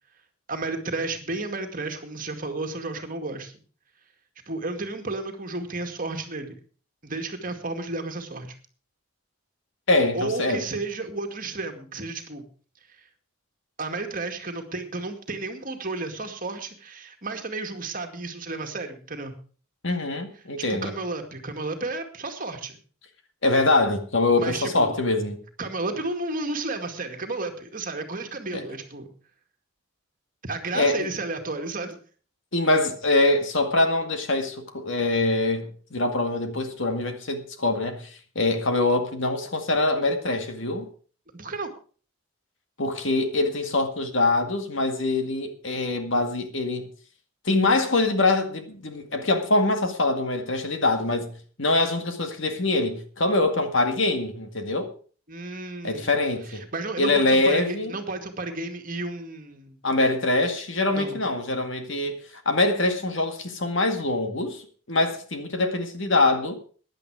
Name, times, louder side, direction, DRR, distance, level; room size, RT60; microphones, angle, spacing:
voice 1, 0.5-3.5 4.5-6.5 7.0-8.5 10.1-12.5 13.0-13.1 13.8-19.4 20.7-22.8 24.4-24.9 25.6-29.1 30.4-32.0 41.3-41.7 55.3-56.1 56.5-59.8 60.9-61.2, right 3 dB, 40° right, 2.1 m, -32 dB
voice 2, 9.9-10.6 19.8-20.9 23.4-25.4 28.5-28.6 30.7-31.1 32.5-40.9 42.8-46.9 47.4-54.9 55.8-56.6 57.0-57.9 59.8-66.6, left 2 dB, 60° left, 2.1 m, -24 dB
15.5 x 10.5 x 4.8 m
head